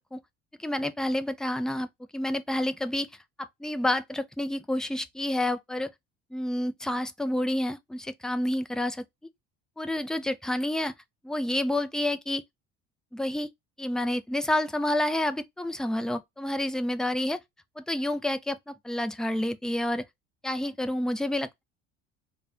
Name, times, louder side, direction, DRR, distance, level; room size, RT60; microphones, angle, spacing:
voice 1, 0.6-1.9 2.1-3.1 3.4-5.9 6.3-9.0 9.8-10.9 11.2-12.4 13.1-13.5 13.8-17.4 17.8-20.0 20.4-21.6, left 1 dB, ahead, 0.5 m, -29 dB
3.2 x 2.4 x 4.2 m
hypercardioid pair, 65°, 33 cm